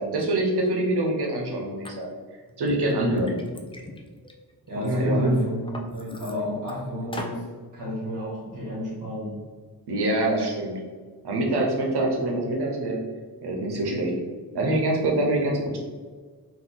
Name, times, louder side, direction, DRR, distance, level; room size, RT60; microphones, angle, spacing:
voice 1, 0.0-2.2 2.6-3.4 4.7-5.4 9.9-10.8 11.2-13.0 13.4-14.1 14.5-15.8, right 1 dB, 75° right, 0 dB, 0.9 m, -25 dB
Liquid, 1.8-1.9 2.5-4.9 5.3-6.7 7.1-7.4, left 2 dB, 15° left, 0.4 m, -40 dB
voice 2, 4.7-7.4 7.7-9.3, equal, 50° right, -7 dB, 1.5 m, -30 dB
3.7 x 2.7 x 4.0 m, 1.5 s
wide cardioid pair, 110°, 39 cm